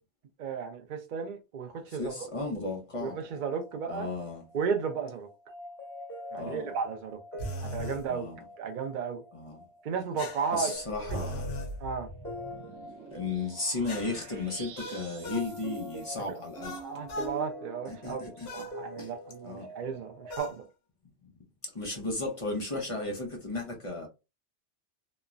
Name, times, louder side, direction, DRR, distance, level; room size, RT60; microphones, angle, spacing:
voice 1, 0.4-2.2 3.0-4.1 4.5-5.3 6.3-7.2 7.6-8.3 8.6-9.2 9.8-10.7 11.1-11.2 11.8-12.1 16.3-16.4 16.8-20.7, right 6 dB, 55° right, 0.6 m, -34 dB
voice 2, 1.9-3.2 3.9-4.4 6.3-6.7 8.1-8.4 9.3-9.6 10.5-11.5 13.1-16.7 17.9-18.5 19.0-19.1 19.4-19.7 21.6-24.1, left 3 dB, 35° left, 0.7 m, -34 dB
sound 1, 2.9-20.4, left 1 dB, 10° left, 1.1 m, -46 dB
sound 2, 7.4-8.0 10.2-11.7 13.9-15.5 16.6-17.4 18.5-18.8 20.3-20.6, left 1 dB, 65° left, 0.9 m, -38 dB
sound 3, 10.8-16.6, right 2 dB, 85° right, 0.9 m, -47 dB
3.0 x 2.1 x 2.4 m
omnidirectional pair, 1.2 m